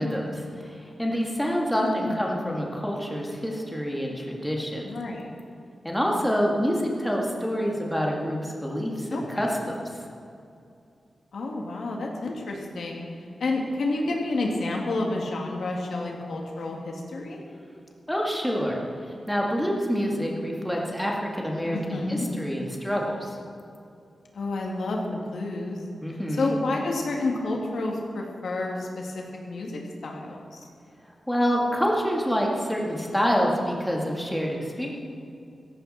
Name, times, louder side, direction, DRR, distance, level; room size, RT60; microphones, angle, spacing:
voice 1, 0.0-4.9 5.8-9.8 18.1-23.3 26.0-26.5 31.3-34.9, equal, 5° left, -2 dB, 2.0 m, -27 dB
voice 2, 1.7-2.2 4.8-5.3 9.1-9.4 11.3-13.1 13.4-17.4 21.7-22.3 24.3-25.8 26.3-30.7, left 2 dB, 75° left, 0 dB, 2.4 m, -30 dB
17.0 x 15.0 x 4.4 m, 2.5 s
wide cardioid pair, 145°, 0 cm